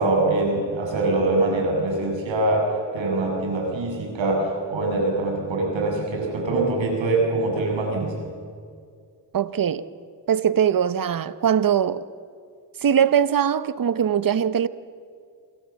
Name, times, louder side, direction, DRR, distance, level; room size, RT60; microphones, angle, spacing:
voice 1, 0.0-2.7 2.9-8.2, right 2 dB, 85° right, 7.2 m, -23 dB
voice 2, 9.3-9.8 10.3-12.0 12.8-14.7, right 8 dB, 50° right, 1.0 m, -21 dB
28.5 x 24.5 x 7.3 m
cardioid pair, 80°, 44 cm